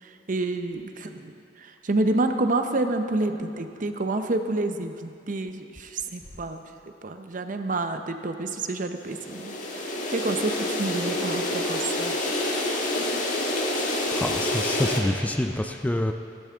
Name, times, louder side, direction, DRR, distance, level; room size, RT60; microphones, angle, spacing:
voice 1, 0.0-6.6 7.0-12.2, right 2 dB, 50° right, 7 dB, 0.7 m, -29 dB
sound 1, 9.0-15.0, left 1 dB, 45° left, 1.4 m, -27 dB
voice 2, 14.1-16.1, left 1 dB, 10° left, 6 dB, 0.4 m, -26 dB
16.0 x 12.0 x 3.5 m, 2.7 s
head